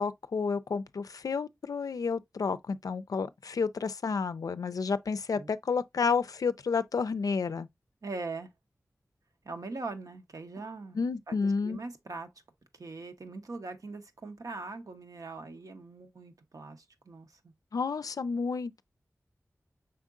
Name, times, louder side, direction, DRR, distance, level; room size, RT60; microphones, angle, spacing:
voice 1, 0.0-7.7 11.0-11.8 17.7-18.8, left 5 dB, 75° left, 0.4 m, -30 dB
voice 2, 8.0-8.5 9.4-11.0 11.3-12.3 12.8-17.5, right 3 dB, 70° right, 0.8 m, -41 dB
5.8 x 3.6 x 2.4 m
cardioid pair, 45°, 6 cm